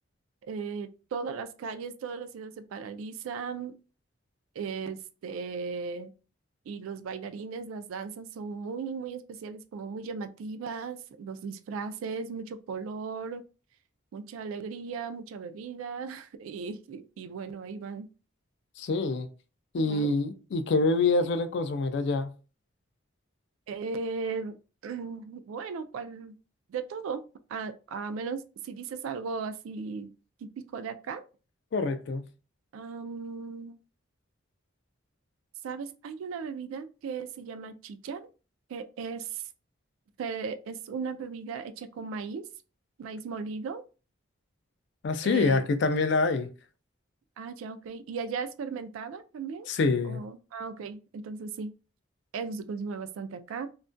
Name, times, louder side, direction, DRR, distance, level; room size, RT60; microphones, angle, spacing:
voice 1, 0.5-3.7 4.6-6.1 6.7-13.4 14.1-18.1 19.8-20.1 23.7-24.6 24.8-26.3 26.7-27.2 27.5-30.1 30.4-31.2 32.7-33.8 35.6-38.3 38.7-39.4 40.2-42.5 43.0-43.8 45.2-45.6 47.4-49.7 50.0-51.7 52.3-53.7, right 5 dB, 85° right, 0.3 m, -37 dB
voice 2, 18.8-19.3 19.7-22.3 31.7-32.2 45.0-46.5 49.7-50.2, left 3 dB, 55° left, 0.3 m, -26 dB
2.3 x 2.1 x 2.5 m
head